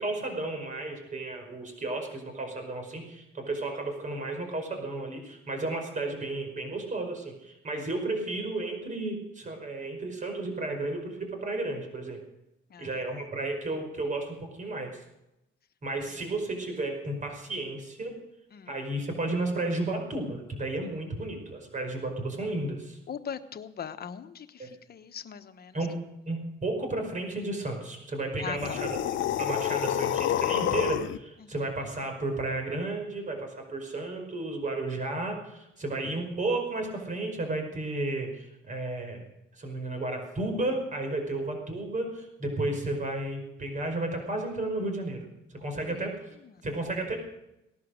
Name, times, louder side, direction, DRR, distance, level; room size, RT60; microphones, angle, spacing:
voice 1, 0.0-12.2 12.8-15.0 15.8-18.2 18.7-23.0 24.6-24.7 25.7-26.0 26.3-29.0 29.4-39.2 39.6-45.2 45.5-46.3 46.6-47.2, right 2 dB, 40° right, 4 dB, 5.1 m, -33 dB
voice 2, 12.7-13.0 18.5-18.7 23.1-25.8 28.4-28.8 31.4-31.5 46.4-46.6, left 7 dB, 50° left, 10 dB, 1.2 m, -40 dB
sound 1, 28.6-31.2, left 11 dB, 75° left, 0.8 m, -28 dB
18.5 x 11.5 x 6.6 m, 0.88 s
cardioid pair, 90°, 20 cm